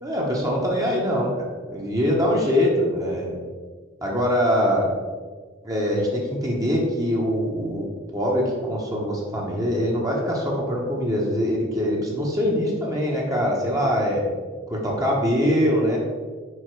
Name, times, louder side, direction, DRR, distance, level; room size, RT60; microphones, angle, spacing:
voice 1, 0.0-3.4 4.0-4.9 5.6-7.9 8.1-14.2 14.7-16.0, equal, 15° right, -2 dB, 0.8 m, -23 dB
5.0 x 4.8 x 4.5 m, 1.5 s
head